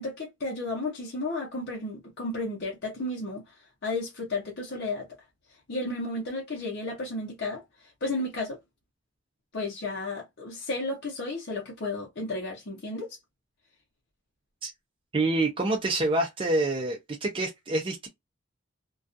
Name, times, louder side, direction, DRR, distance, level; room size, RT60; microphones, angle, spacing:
voice 1, 0.0-3.5 3.8-5.1 5.7-8.6 9.5-13.2, left 2 dB, 60° left, 0.7 m, -33 dB
voice 2, 15.1-18.1, right 2 dB, 25° right, 0.5 m, -27 dB
2.3 x 2.3 x 2.5 m
head